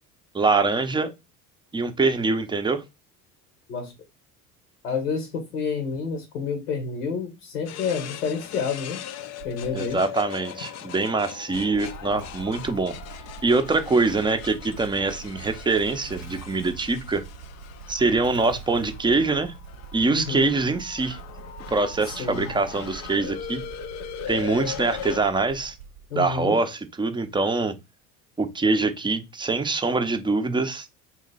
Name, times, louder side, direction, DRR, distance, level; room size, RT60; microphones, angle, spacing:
voice 1, 0.3-1.1 1.7-2.8 9.7-12.9 13.4-17.2 17.9-19.5 19.9-21.2 21.7-23.6 24.3-25.7 26.1-27.7 28.4-30.9, right 3 dB, 10° right, 0.6 m, -24 dB
voice 2, 4.8-9.0 9.4-10.0 20.1-20.5 22.0-22.5 26.1-26.6, left 5 dB, 85° left, 1.1 m, -29 dB
sound 1, 7.6-25.2, left 10 dB, 40° left, 0.4 m, -39 dB
Motorcycle / Engine starting, 9.4-10.0 11.4-26.3, right 6 dB, 75° right, 0.7 m, -43 dB
2.9 x 2.8 x 4.0 m
hypercardioid pair, 70°, 45 cm